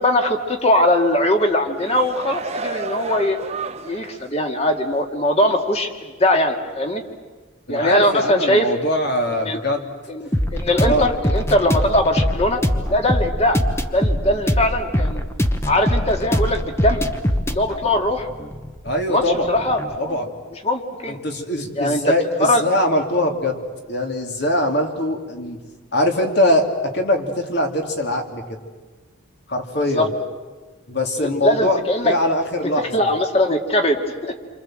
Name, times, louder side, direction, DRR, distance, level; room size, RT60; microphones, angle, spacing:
voice 1, 0.0-3.4 3.8-7.0 7.7-8.7 9.3-9.6 10.1-12.6 12.9-13.6 13.9-15.2 15.7-17.1 17.5-18.3 19.1-20.2 20.6-21.2 21.7-22.1 22.4-22.6 29.9-30.1 31.2-32.2 32.6-34.3, left 1 dB, 30° left, 4 dB, 2.2 m, -20 dB
sound 1, 1.5-4.3 4.7-4.8, right 4 dB, 30° right, 0.9 m, -32 dB
voice 2, 7.7-9.9 10.8-11.1 18.8-19.5 20.0-20.3 21.2-23.6 23.9-25.6 25.9-26.6 26.9-28.4 29.5-30.1 30.9-31.8 32.0-33.1, left 1 dB, 55° left, 3 dB, 3.0 m, -22 dB
sound 2, 10.3-20.0, equal, 15° left, 1.1 m, -23 dB
29.0 x 25.0 x 7.7 m, 1.3 s
head